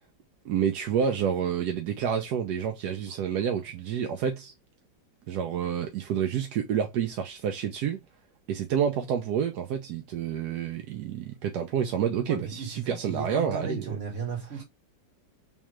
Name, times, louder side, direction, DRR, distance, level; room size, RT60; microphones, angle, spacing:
voice 1, 0.4-4.5 5.3-8.0 8.5-13.8, right 8 dB, 70° right, 1.0 m, -29 dB
voice 2, 12.3-14.6, right 5 dB, 40° right, 1.8 m, -35 dB
3.6 x 3.1 x 3.0 m
omnidirectional pair, 2.1 m